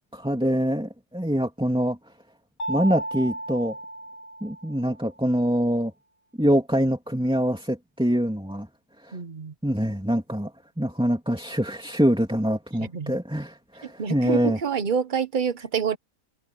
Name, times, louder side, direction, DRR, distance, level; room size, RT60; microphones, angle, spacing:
voice 1, 0.1-2.0 2.7-3.8 4.4-5.9 6.4-8.7 9.0-9.2 9.6-10.5 10.8-14.6, equal, 5° right, 2.7 m, -24 dB
Mallet percussion, 2.6-5.1, right 1 dB, 40° left, 1.5 m, -34 dB
voice 2, 9.1-9.5 12.8-13.2 13.8-16.0, right 7 dB, 35° right, 0.9 m, -27 dB
omnidirectional pair, 1.8 m